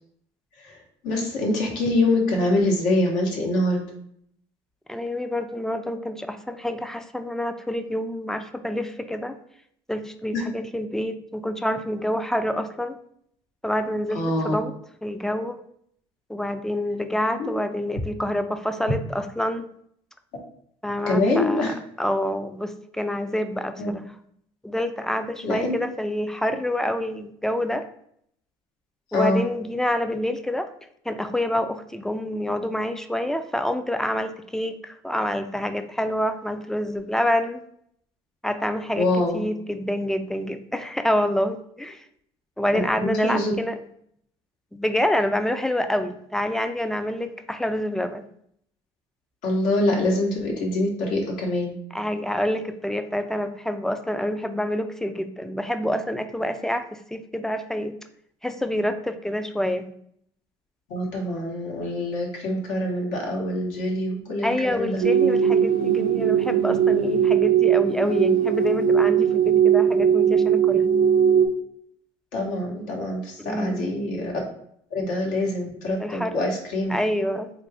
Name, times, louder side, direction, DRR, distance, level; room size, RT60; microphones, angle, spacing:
voice 1, 1.0-3.8 10.3-10.4 14.1-14.5 17.4-17.5 21.1-21.7 23.8-23.9 25.4-25.7 29.1-29.5 39.0-39.4 42.7-43.5 49.4-51.8 60.9-65.0 72.3-74.3 74.9-76.9, left 1 dB, 75° left, -1 dB, 1.0 m, -25 dB
voice 2, 4.9-9.4 9.9-13.0 13.6-14.7 15.0-15.6 16.3-19.7 20.8-21.7 22.0-24.0 24.6-27.9 29.1-30.7 31.1-37.6 38.4-39.1 39.3-42.0 42.6-43.7 44.7-48.2 51.9-57.9 58.4-59.9 64.4-70.9 73.4-73.8 76.0-76.5 76.9-77.7, left 1 dB, 5° left, 9 dB, 0.3 m, -27 dB
sound 1, 65.0-71.5, right 8 dB, 75° right, 0.5 m, -19 dB
3.6 x 2.5 x 3.3 m, 0.69 s
supercardioid pair, 80°, 13 cm